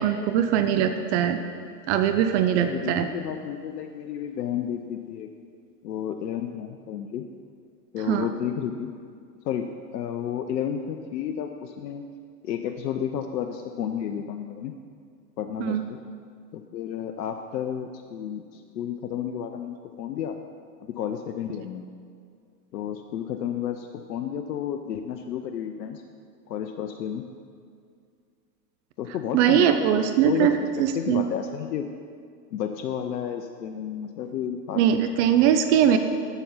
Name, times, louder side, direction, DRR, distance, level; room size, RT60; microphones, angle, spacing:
voice 1, 0.0-1.4 1.9-3.1 8.1-8.3 15.6-15.8 29.3-30.5 30.8-31.2 34.7-36.0, right 10 dB, 45° right, 8 dB, 0.6 m, -21 dB
voice 2, 2.6-5.3 5.8-7.2 7.9-8.9 9.4-9.7 9.9-12.0 12.4-14.7 15.4-16.0 16.5-20.4 20.8-21.9 22.7-26.0 26.5-27.2 29.0-29.8 30.2-30.7 30.9-31.9 32.5-35.0, left 9 dB, 85° left, 5 dB, 0.6 m, -31 dB
7.1 x 6.7 x 5.6 m, 2.2 s
hypercardioid pair, 110°, 49 cm